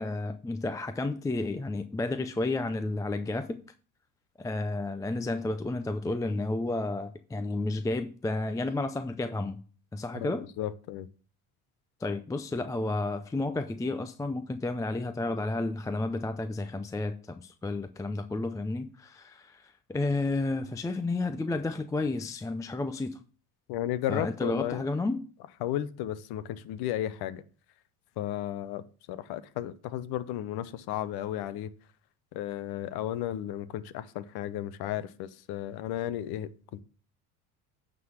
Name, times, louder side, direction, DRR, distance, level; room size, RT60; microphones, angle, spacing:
voice 1, 0.0-3.6 4.4-9.6 9.9-10.5 12.0-23.2 24.1-25.2, left 2 dB, 10° left, 0.4 m, -31 dB
voice 2, 10.1-11.1 23.7-24.8 25.6-27.4 28.2-31.7 32.3-36.8, left 12 dB, 60° left, 0.8 m, -34 dB
9.3 x 3.9 x 6.5 m
hypercardioid pair, 85°, 44 cm